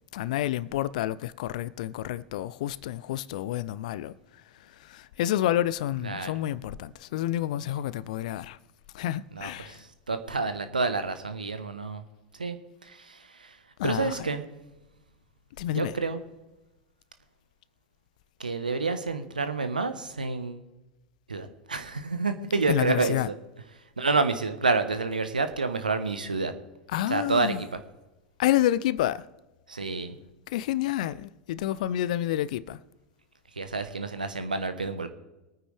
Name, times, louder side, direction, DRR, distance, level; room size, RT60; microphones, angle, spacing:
voice 1, 0.1-4.1 4.8-8.6 8.9-9.8 13.8-14.2 15.6-15.9 22.7-23.3 26.9-27.6 28.4-29.2 30.5-32.8, left 13 dB, 60° left, 0.6 m, -29 dB
voice 2, 9.3-12.0 12.4-12.6 12.8-13.6 13.8-14.4 15.7-16.2 18.4-20.6 21.3-23.3 24.0-26.5 27.1-27.8 29.7-30.2 33.6-35.1, right 3 dB, 85° right, 1.2 m, -29 dB
23.5 x 9.4 x 3.4 m
figure-of-eight pair, 85°, 4 cm